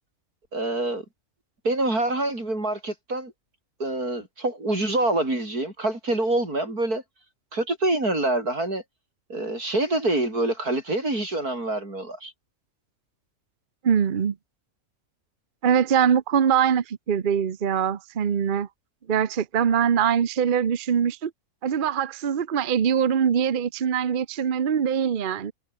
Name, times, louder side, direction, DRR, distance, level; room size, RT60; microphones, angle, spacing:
voice 1, 0.5-1.0 1.6-3.3 3.8-7.0 7.5-8.8 9.3-12.3, right 2 dB, 90° right, 8.0 m, -26 dB
voice 2, 13.8-14.4 15.6-18.7 19.1-21.3 21.6-25.5, right 8 dB, 40° right, 0.9 m, -23 dB
omnidirectional pair, 1.6 m